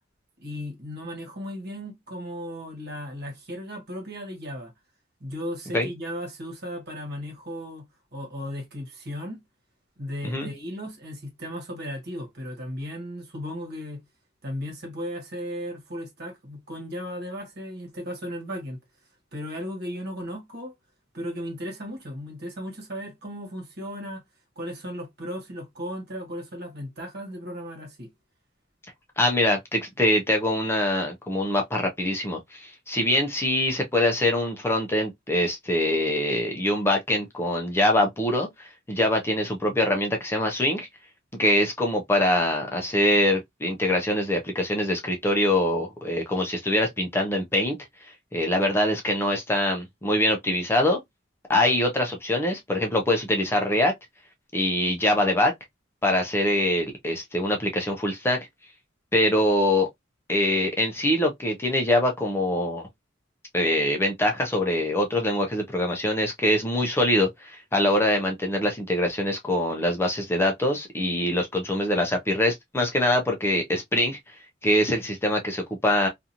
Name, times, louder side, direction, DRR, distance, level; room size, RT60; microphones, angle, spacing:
voice 1, 0.4-4.7 5.2-9.4 10.0-14.0 14.4-18.8 19.3-20.7 21.1-24.2 24.6-28.1, equal, 55° right, 1.2 m, -36 dB
voice 2, 29.2-40.9 41.4-47.8 48.3-51.0 51.5-53.9 54.5-55.5 56.0-58.4 59.1-59.9 60.3-62.9 63.5-74.2 74.6-76.1, left 1 dB, 15° left, 0.5 m, -24 dB
2.9 x 2.5 x 2.5 m
head